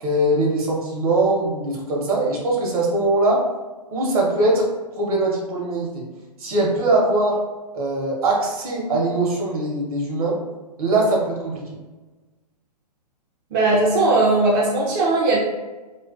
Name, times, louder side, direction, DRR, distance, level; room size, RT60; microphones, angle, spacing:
voice 1, 0.0-3.4 3.9-4.7 5.0-6.0 6.4-7.4 7.7-10.4 10.8-11.6, right 2 dB, 60° right, -2 dB, 0.8 m, -21 dB
voice 2, 13.5-15.4, right 2 dB, 35° right, -5 dB, 0.4 m, -18 dB
2.4 x 2.2 x 2.3 m, 1.2 s
hypercardioid pair, 135°, 21 cm